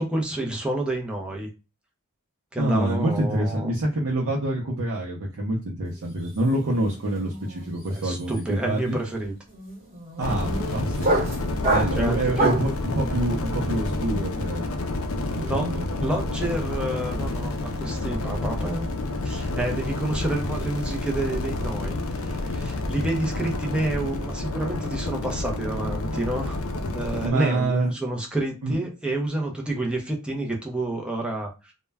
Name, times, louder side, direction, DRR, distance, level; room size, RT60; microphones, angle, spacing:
voice 1, 0.0-1.5 2.5-3.7 7.9-9.3 11.9-12.6 15.4-15.7 16.0-18.9 19.2-26.6 26.9-31.7, right 1 dB, 5° right, -1 dB, 0.5 m, -29 dB
voice 2, 2.6-9.0 10.2-11.3 11.7-14.6 15.3-16.2 22.9-23.1 27.2-27.9 28.6-28.7, right 1 dB, 70° right, -3 dB, 0.5 m, -26 dB
sound 1, 6.0-6.3 6.5-12.8, right 2 dB, 30° right, 1.0 m, -28 dB
sound 2, 10.2-27.3, left 2 dB, 70° left, 0.4 m, -29 dB
2.2 x 2.1 x 3.3 m, 0.30 s
head